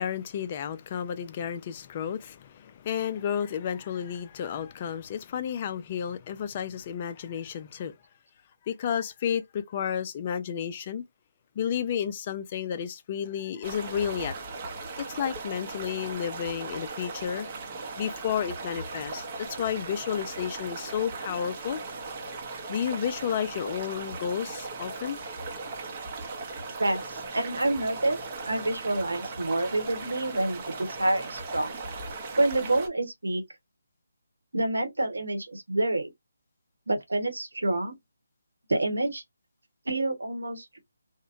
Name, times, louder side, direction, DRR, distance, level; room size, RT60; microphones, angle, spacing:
voice 1, 0.0-8.0 8.6-11.0 11.6-14.3 15.0-17.5 18.0-21.8 22.7-25.2, left 8 dB, 30° left, 0.4 m, -32 dB
sound 1, 13.6-32.9, right 3 dB, 30° right, 0.7 m, -38 dB
voice 2, 26.8-28.2 28.5-31.8 32.4-33.4 34.5-36.1 36.9-37.9 38.7-39.2 39.9-40.8, right 2 dB, 85° right, 1.0 m, -28 dB
2.7 x 2.1 x 2.5 m
figure-of-eight pair, 160°, 0 cm